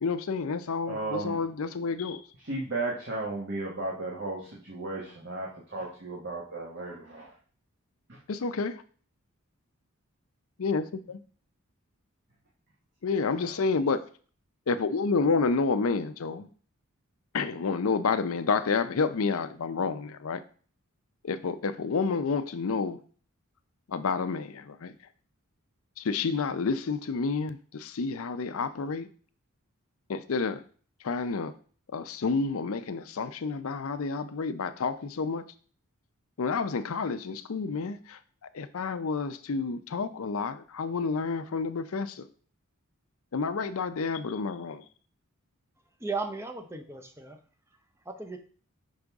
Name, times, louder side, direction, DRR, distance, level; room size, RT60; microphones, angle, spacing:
voice 1, 0.0-2.2 8.3-8.8 10.6-11.2 13.0-14.0 14.7-16.5 17.3-20.4 21.2-23.0 23.9-24.9 26.0-29.1 30.1-30.6 31.0-31.5 31.9-35.4 36.4-38.2 38.5-42.3 43.3-44.8, left 4 dB, 70° left, 11 dB, 0.5 m, -29 dB
voice 2, 0.9-1.4 2.5-7.3 8.1-8.2 13.4-13.5, right 2 dB, 50° right, -3 dB, 1.2 m, -35 dB
voice 3, 46.0-47.4 48.1-48.4, right 3 dB, 10° right, 6 dB, 0.6 m, -35 dB
5.6 x 5.2 x 3.5 m, 0.42 s
head